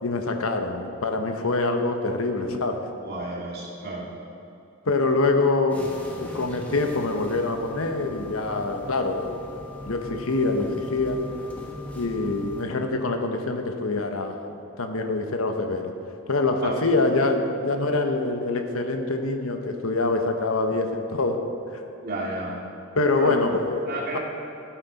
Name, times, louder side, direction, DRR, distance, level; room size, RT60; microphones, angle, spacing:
voice 1, 0.0-2.8 4.9-9.4 9.8-11.2 11.9-15.9 16.3-21.4 21.7-21.8 23.0-23.9 24.1-24.2, left 3 dB, 80° left, 5 dB, 1.0 m, -25 dB
voice 2, 3.0-4.1 16.6-16.9 22.0-22.5 23.1-23.4 23.9-24.2, right 2 dB, 50° right, -4 dB, 2.3 m, -31 dB
sound 1, 5.7-12.6, left 1 dB, 5° left, 1.3 m, -39 dB
13.0 x 9.1 x 4.1 m, 2.9 s
head